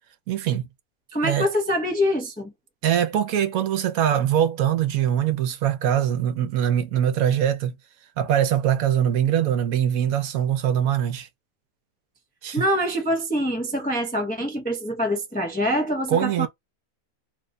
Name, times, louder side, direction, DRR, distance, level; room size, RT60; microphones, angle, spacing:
voice 1, 0.3-0.7 1.2-1.5 2.8-7.8 8.2-11.3 12.4-12.6 16.1-16.5, right 10 dB, 75° right, 1.1 m, -22 dB
voice 2, 1.1-2.5 12.5-16.5, equal, 15° left, 0.4 m, -25 dB
3.0 x 2.2 x 3.6 m
omnidirectional pair, 1.5 m